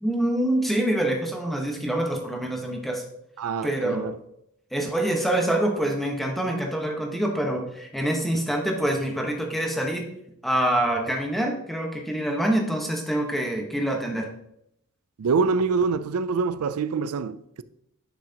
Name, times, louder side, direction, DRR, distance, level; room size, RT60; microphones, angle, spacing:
voice 1, 0.0-3.0 3.6-4.1 4.7-10.1 10.4-14.3, right 1 dB, ahead, 1.1 m, -26 dB
voice 2, 3.4-4.1 15.2-17.6, right 4 dB, 75° right, 0.4 m, -25 dB
10.5 x 5.8 x 2.9 m
head